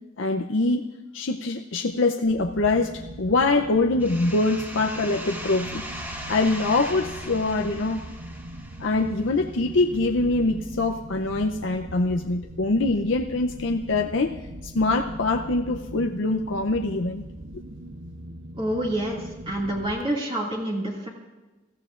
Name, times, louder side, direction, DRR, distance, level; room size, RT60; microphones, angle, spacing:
voice 1, 0.2-0.8 1.1-5.8 6.3-8.0 8.8-14.4 14.6-17.2 17.5-17.6, left 2 dB, 75° left, 3 dB, 0.6 m, -24 dB
sound 1, 2.2-20.0, right 1 dB, 80° right, 0.9 m, -40 dB
sound 2, 4.0-9.5, equal, 10° right, 1.3 m, -39 dB
voice 2, 18.6-19.2 19.5-21.1, right 1 dB, 30° right, -4 dB, 2.2 m, -27 dB
27.0 x 14.5 x 2.5 m, 1.1 s
head